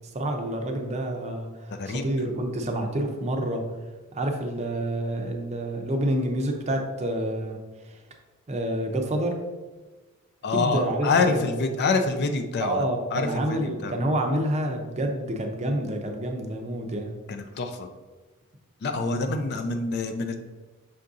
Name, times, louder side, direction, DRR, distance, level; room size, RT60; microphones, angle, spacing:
voice 1, 0.1-1.5 1.9-3.6 4.1-7.6 8.5-9.3 10.5-11.0 11.4-11.5 12.6-17.2 19.0-19.2, right 1 dB, 30° right, 3 dB, 0.5 m, -28 dB
voice 2, 10.4-13.9 17.3-17.9 18.8-20.4, left 4 dB, 50° left, 7 dB, 0.4 m, -26 dB
5.6 x 2.6 x 3.6 m, 1.3 s
head